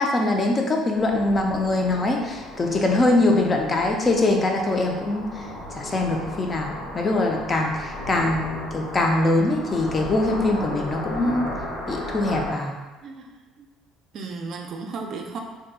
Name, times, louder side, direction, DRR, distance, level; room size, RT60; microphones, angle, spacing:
voice 1, 0.0-5.5 5.7-11.5 11.9-12.8, left 2 dB, 25° left, 2 dB, 0.4 m, -23 dB
sound 1, 0.9-12.5, left 1 dB, 65° left, 0.7 m, -35 dB
voice 2, 13.0-13.3 13.6-13.7 14.1-15.4, right 4 dB, 50° right, 3 dB, 0.4 m, -34 dB
2.7 x 2.3 x 3.5 m, 1.2 s
cardioid pair, 120°, 0 cm